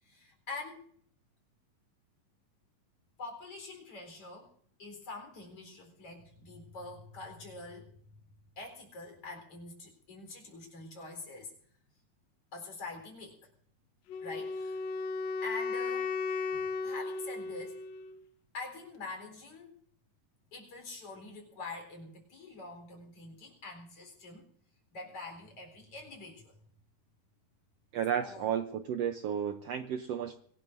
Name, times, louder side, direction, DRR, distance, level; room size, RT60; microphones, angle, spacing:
voice 1, 0.0-0.8 3.2-4.5 4.8-7.9 8.6-11.5 12.5-13.5 14.2-14.8 15.4-16.1 16.5-17.8 18.5-19.7 20.5-24.5 24.9-26.6 28.2-28.5, left 3 dB, 45° left, 3 dB, 5.0 m, -45 dB
Wind instrument woodwind instrument, 14.1-18.2, left 4 dB, 75° left, 1.6 m, -35 dB
voice 2, 27.9-30.4, right 8 dB, 85° right, 8 dB, 1.4 m, -33 dB
24.5 x 18.0 x 2.7 m, 0.62 s
omnidirectional pair, 3.8 m